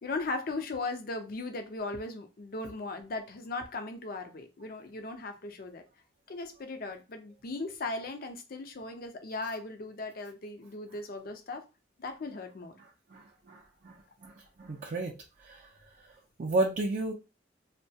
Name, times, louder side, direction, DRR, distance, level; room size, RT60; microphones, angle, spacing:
voice 1, 0.0-5.8 6.3-11.6 12.0-12.7, left 3 dB, 50° left, 0.5 m, -37 dB
voice 2, 13.1-14.0 14.2-14.3 14.6-15.2 15.4-15.7 16.4-17.1, right 2 dB, 45° right, 0.4 m, -32 dB
2.2 x 2.2 x 2.6 m
head